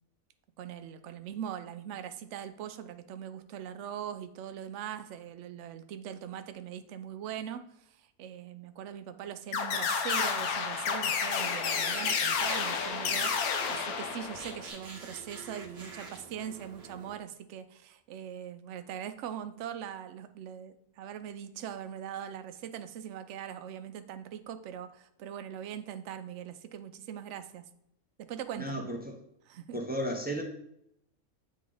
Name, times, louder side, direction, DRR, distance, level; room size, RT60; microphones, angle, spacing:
voice 1, 0.6-7.6 8.0-27.7 28.2-28.8 29.5-29.8, right 9 dB, 65° right, 9 dB, 0.8 m, -41 dB
sound 1, 9.5-14.7, left 6 dB, 90° left, 1.2 m, -30 dB
sound 2, 10.7-17.2, right 3 dB, 50° right, 1.2 m, -49 dB
voice 2, 28.6-29.2 29.7-30.4, equal, 10° right, 2 dB, 0.5 m, -34 dB
8.7 x 3.2 x 3.8 m, 0.75 s
omnidirectional pair, 1.5 m